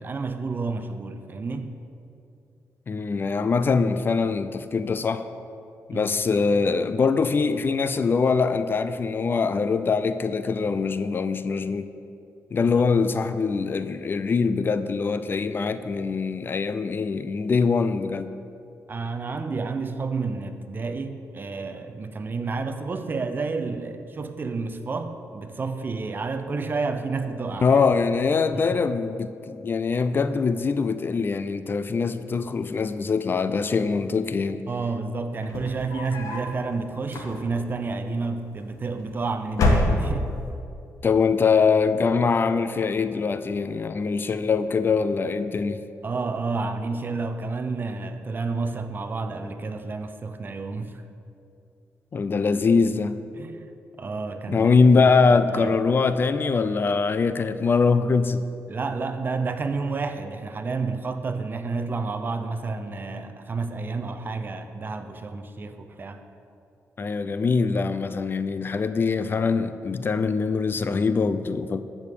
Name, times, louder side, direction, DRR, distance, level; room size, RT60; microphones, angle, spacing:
voice 1, 0.0-1.7 5.9-6.1 12.6-12.8 18.9-27.8 28.7-28.9 34.7-40.3 46.0-51.0 53.4-53.7 54.0-54.7 55.0-55.7 58.7-66.2, right 4 dB, 35° right, 8 dB, 0.8 m, -30 dB
voice 2, 2.9-5.2 5.9-11.9 12.5-18.3 27.6-34.6 41.0-45.8 52.1-53.2 54.5-58.4 67.0-71.8, left 4 dB, 40° left, 11 dB, 0.5 m, -23 dB
sound 1, 35.4-36.5 37.0-37.7 38.7-39.2 39.5-40.4, left 2 dB, 85° left, 1.8 m, -25 dB
13.5 x 5.3 x 8.4 m, 2.6 s
cardioid pair, 105°, 6 cm